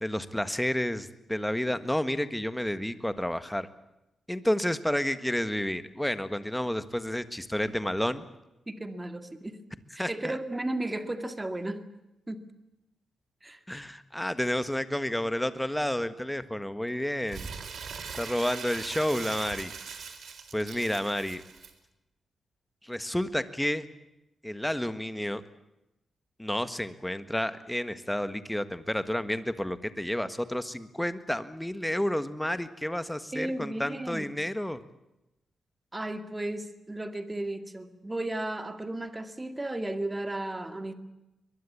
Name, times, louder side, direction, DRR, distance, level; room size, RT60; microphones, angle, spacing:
voice 1, 0.0-3.7 4.3-8.2 10.0-10.4 13.7-17.5 18.2-19.7 20.5-21.4 22.8-23.9 24.4-25.4 26.4-34.8, left 1 dB, 5° left, 12 dB, 1.6 m, -30 dB
voice 2, 8.7-9.6 10.0-11.8 12.3-12.4 13.4-13.6 33.3-34.3 35.9-40.9, right 1 dB, 15° right, 9 dB, 2.2 m, -34 dB
Crumpling crinkling, 17.3-21.7, right 6 dB, 70° right, 3.6 m, -41 dB
23.0 x 22.0 x 8.6 m, 0.93 s
wide cardioid pair, 115°, 0 cm